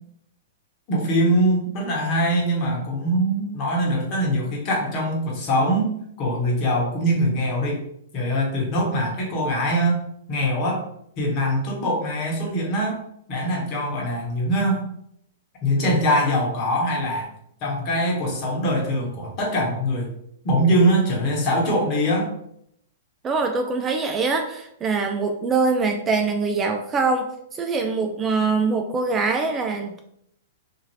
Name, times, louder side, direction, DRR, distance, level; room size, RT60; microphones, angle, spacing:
voice 1, 0.9-7.8 8.1-10.9 11.2-13.0 13.3-14.8 15.6-17.3 17.6-20.1 20.4-22.3, equal, 40° left, -2 dB, 1.1 m, -23 dB
voice 2, 23.2-30.0, right 4 dB, 20° right, 5 dB, 0.3 m, -23 dB
2.7 x 2.4 x 3.1 m, 0.72 s
hypercardioid pair, 125°, 0 cm